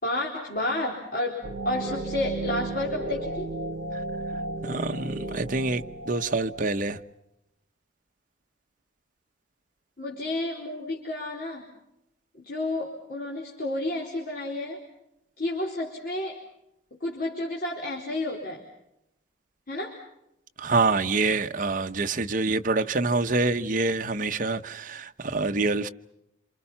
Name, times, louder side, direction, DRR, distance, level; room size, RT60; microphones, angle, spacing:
voice 1, 0.0-3.5 10.0-11.7 12.3-14.8 15.4-16.4 16.9-18.6 19.7-20.0, left 1 dB, 50° left, 4.4 m, -31 dB
sound 1, 1.4-7.0, right 2 dB, 60° right, 2.0 m, -34 dB
voice 2, 4.6-7.0 20.6-25.9, right 3 dB, 45° right, 1.0 m, -26 dB
28.0 x 28.0 x 5.7 m
head